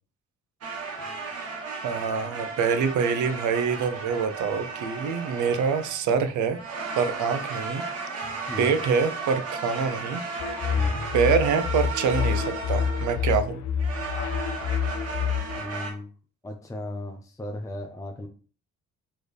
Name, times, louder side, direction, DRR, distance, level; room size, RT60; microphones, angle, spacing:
sound 1, 0.6-6.1 6.5-13.3 13.8-15.9, right 4 dB, 50° right, 1.3 m, -35 dB
voice 1, 1.8-6.6 7.0-7.8 8.2-10.2 10.5-10.8 11.1-13.6, right 6 dB, 75° right, 9 dB, 0.7 m, -25 dB
sound 2, 10.4-15.6, left 7 dB, 70° left, 0.6 m, -28 dB
voice 2, 15.5-16.1 16.4-18.3, left 1 dB, 10° left, 3 dB, 0.6 m, -36 dB
4.3 x 3.2 x 3.3 m, 0.38 s
cardioid pair, 90°, 30 cm